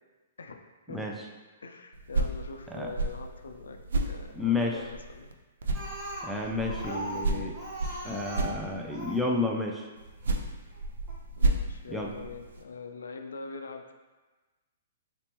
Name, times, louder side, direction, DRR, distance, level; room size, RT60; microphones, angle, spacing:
voice 1, 1.6-5.3 6.8-7.6 11.4-13.9, left 4 dB, 80° left, 5 dB, 0.3 m, -43 dB
sound 1, 1.9-5.3 5.6-9.2 10.0-12.6, right 2 dB, 75° right, 0.3 m, -32 dB
voice 2, 4.3-4.8 6.2-7.5 8.0-9.9 11.9-12.1, left 3 dB, 5° right, 0 dB, 0.4 m, -31 dB
Speech, 5.7-9.3 10.2-10.3 10.7-10.8 11.1-11.2, right 1 dB, 30° right, 1.0 m, -39 dB
3.3 x 2.9 x 2.9 m, 1.2 s
hypercardioid pair, 125°, 0 cm